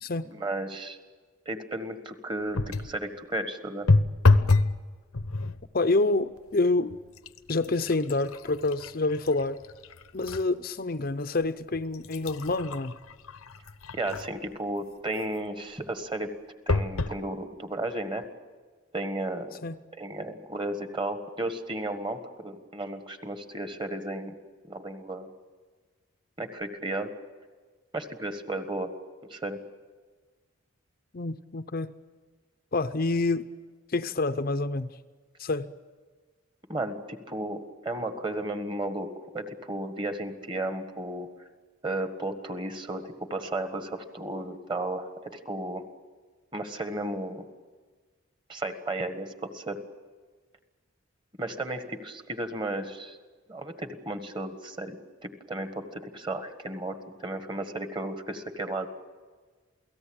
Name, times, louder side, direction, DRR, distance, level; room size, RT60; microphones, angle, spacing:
voice 1, 0.2-1.0 1.4-3.9 13.9-16.3 16.7-18.2 18.9-19.6 20.0-24.3 24.7-25.3 26.4-27.1 27.9-28.9 29.2-29.6 36.7-39.1 39.3-41.3 41.8-45.8 46.5-47.4 48.5-49.8 51.4-53.2 53.5-58.9, right 1 dB, 20° right, 8 dB, 1.6 m, -34 dB
sound 1, 2.5-3.0 3.9-4.8 5.1-5.6 6.4-6.5 6.9-10.5 11.0-11.1 11.7-14.5 16.7-17.2 17.9-18.0 18.2-18.3, left 3 dB, 90° left, 1.0 m, -27 dB
voice 2, 5.7-7.0 7.5-9.6 10.1-12.9 19.6-19.8 31.1-31.9 32.7-33.4 33.9-34.9 35.4-35.7, left 2 dB, 45° left, 10 dB, 0.6 m, -27 dB
28.5 x 18.0 x 8.8 m, 1.4 s
head